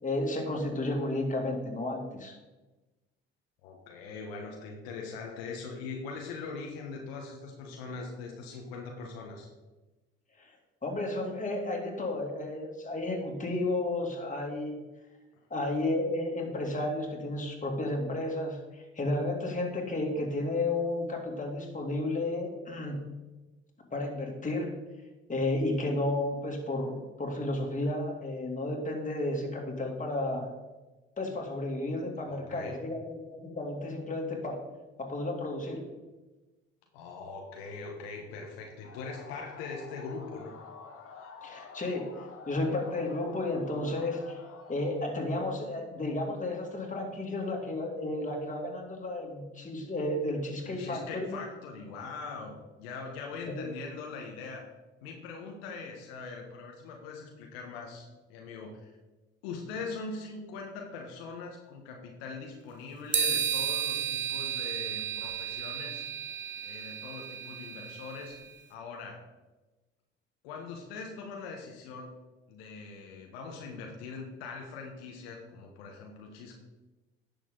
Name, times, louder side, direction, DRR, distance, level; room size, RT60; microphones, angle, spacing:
voice 1, 0.0-2.3 10.4-10.5 10.8-14.8 15.5-23.1 23.9-24.8 25.3-30.5 31.2-34.6 35.0-35.8 41.4-42.1 42.5-44.4 44.7-51.3 53.5-53.6, left 2 dB, 25° left, 0 dB, 2.8 m, -32 dB
voice 2, 3.6-9.5 32.3-32.8 36.9-40.6 50.6-54.7 55.0-58.9 59.4-66.0 66.6-68.4 68.7-69.2 70.4-72.1 72.5-76.6, left 4 dB, 80° left, 1 dB, 1.3 m, -42 dB
sound 1, 38.8-45.0, left 5 dB, 45° left, 1.5 m, -49 dB
sound 2, 63.1-68.4, right 7 dB, 40° right, 1.3 m, -33 dB
10.5 x 6.8 x 3.9 m, 1.1 s
hypercardioid pair, 60°, 30 cm